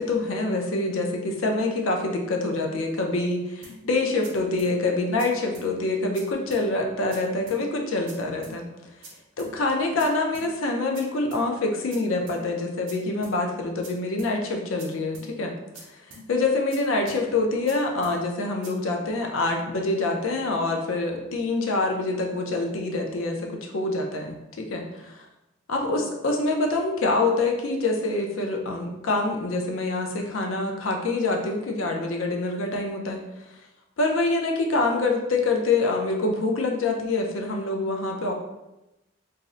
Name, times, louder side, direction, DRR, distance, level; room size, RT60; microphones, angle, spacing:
voice 1, 0.0-8.6 9.4-15.5 16.1-25.2 25.7-33.2 34.0-38.3, left 2 dB, 80° left, 2 dB, 0.5 m, -26 dB
sound 1, 3.6-3.8 4.2-4.3 4.6-4.7 5.2-5.3 5.5-5.7 6.1-6.2 6.5-6.6 7.1-7.2 7.5-7.6 8.1-8.2 8.4-8.6 9.0-9.1 9.4-9.5 10.0-10.1 10.3-10.5 10.9-11.0 11.3-11.4 11.9-12.0 12.3-12.4 12.9-13.0 13.2-13.4 13.8-13.9 14.2-14.3 14.8-14.9 15.1-15.3 15.7-15.8 16.1-16.2 16.7-16.8 17.1-17.2 17.7-17.8 18.0-18.2 18.6-18.7, right 2 dB, 65° right, 0.6 m, -44 dB
2.7 x 2.0 x 3.6 m, 0.95 s
head